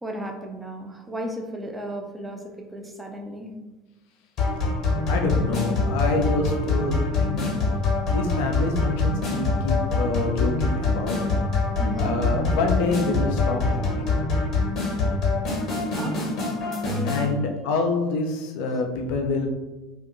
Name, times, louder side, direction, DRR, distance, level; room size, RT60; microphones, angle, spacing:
voice 1, 0.0-3.5 11.8-12.2 15.9-16.6 16.8-17.2, equal, 10° right, 2 dB, 0.4 m, -34 dB
sound 1, 4.4-17.3, left 3 dB, 45° left, 0.9 m, -25 dB
voice 2, 5.1-7.6 8.1-11.2 12.0-14.1 17.0-19.5, left 3 dB, 60° left, 2 dB, 0.4 m, -26 dB
2.6 x 2.4 x 2.5 m, 1.1 s
figure-of-eight pair, 65°, 0 cm